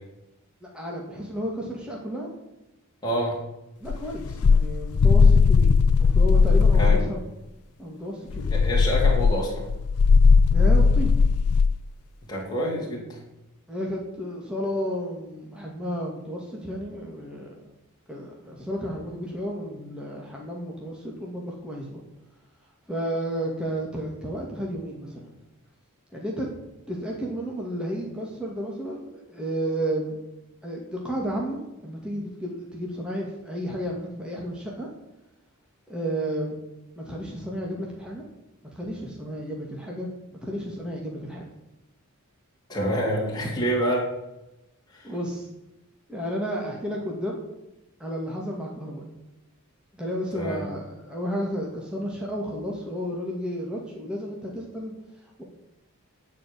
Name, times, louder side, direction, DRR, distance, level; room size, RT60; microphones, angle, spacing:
voice 1, 0.6-2.3 3.8-7.2 7.8-8.6 10.5-11.1 13.7-17.5 18.1-22.0 22.9-25.3 26.1-26.5 26.9-30.2 30.6-31.6 31.8-34.9 35.9-36.6 37.0-38.2 38.7-40.1 40.4-41.4 45.0-45.5 46.1-47.4 48.0-49.1 49.9-54.9 55.4-55.5, equal, 5° right, -3 dB, 2.5 m, -32 dB
voice 2, 3.0-3.4 6.8-7.0 8.5-9.6 12.3-13.2 42.7-44.0 44.9-45.1 50.3-50.6, equal, 20° left, -4 dB, 3.4 m, -27 dB
sound 1, 3.9-7.1 8.3-11.8, left 5 dB, 90° left, 0.4 m, -18 dB
16.5 x 5.7 x 9.9 m, 0.94 s
head